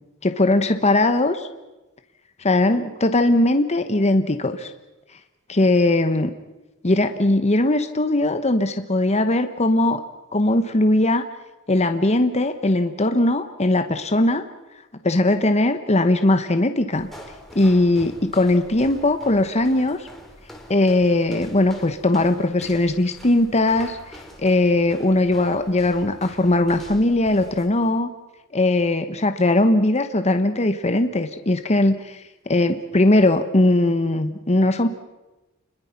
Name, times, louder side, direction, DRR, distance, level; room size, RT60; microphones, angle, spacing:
voice 1, 0.2-1.5 2.4-4.7 5.5-6.3 6.8-10.0 10.3-11.2 11.7-14.4 15.0-17.1 17.5-20.1 20.7-28.1 28.5-34.9, left 2 dB, 30° left, 8 dB, 1.1 m, -19 dB
sound 1, 16.9-27.7, equal, ahead, 3.5 m, -44 dB
29.5 x 21.5 x 5.9 m, 1.1 s
head